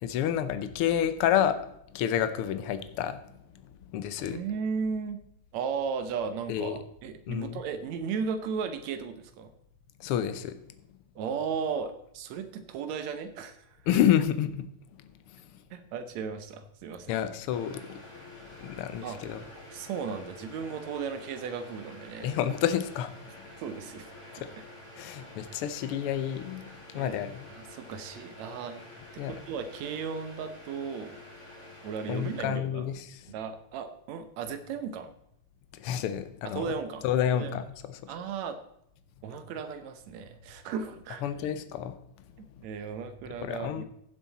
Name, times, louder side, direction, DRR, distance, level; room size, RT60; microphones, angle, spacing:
voice 1, 0.0-3.2 3.9-4.4 6.5-6.8 7.3-7.6 10.0-10.6 13.9-14.7 15.3-15.4 17.1-18.0 18.6-19.4 22.2-23.1 24.3-24.5 25.0-26.6 26.9-27.5 29.2-29.3 32.1-33.3 35.7-36.7 37.0-37.6 37.9-38.0 41.2-41.9 43.4-43.8, left 10 dB, 75° left, 10 dB, 1.3 m, -29 dB
voice 2, 4.3-5.2 5.5-9.5 11.2-13.8 15.7-17.1 19.0-19.2 19.7-22.3 23.6-24.1 26.9-27.2 27.5-28.8 29.1-31.2 31.8-32.8 33.3-35.1 36.4-37.1 37.3-37.6 38.1-38.6 39.2-41.2 42.6-43.8, right 6 dB, 70° right, 9 dB, 2.2 m, -35 dB
sound 1, 17.5-32.5, left 1 dB, 10° left, 2.9 m, -48 dB
16.0 x 7.5 x 4.1 m, 0.75 s
omnidirectional pair, 3.4 m